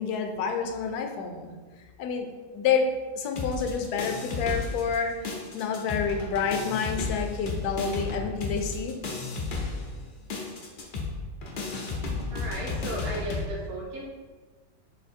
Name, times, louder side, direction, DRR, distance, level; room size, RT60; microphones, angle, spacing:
voice 1, 0.0-1.5 2.0-2.3 2.5-2.9 3.2-5.1 5.5-9.0, left 6 dB, 75° left, 4 dB, 1.0 m, -28 dB
sound 1, 3.4-5.0 5.2-13.5, left 3 dB, 90° left, 0.4 m, -33 dB
voice 2, 12.3-14.0, right 1 dB, 60° right, -5 dB, 1.5 m, -35 dB
4.1 x 2.6 x 4.3 m, 1.4 s
omnidirectional pair, 1.8 m